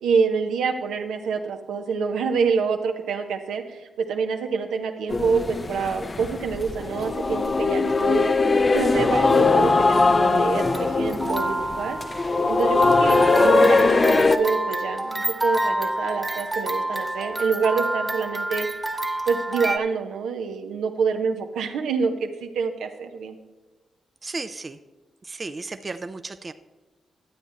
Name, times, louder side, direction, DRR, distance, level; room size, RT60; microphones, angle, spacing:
voice 1, 0.0-8.3 8.7-12.0 12.5-18.7 19.3-23.4, right 5 dB, 85° right, 5 dB, 0.8 m, -26 dB
sound 1, 5.1-14.4, left 3 dB, 40° left, 0.6 m, -20 dB
sound 2, 10.6-19.8, right 1 dB, 15° right, 0.8 m, -28 dB
voice 2, 24.2-24.8 25.2-26.5, right 3 dB, 40° right, 9 dB, 0.5 m, -34 dB
12.0 x 8.1 x 4.2 m, 1.2 s
supercardioid pair, 45°, 0 cm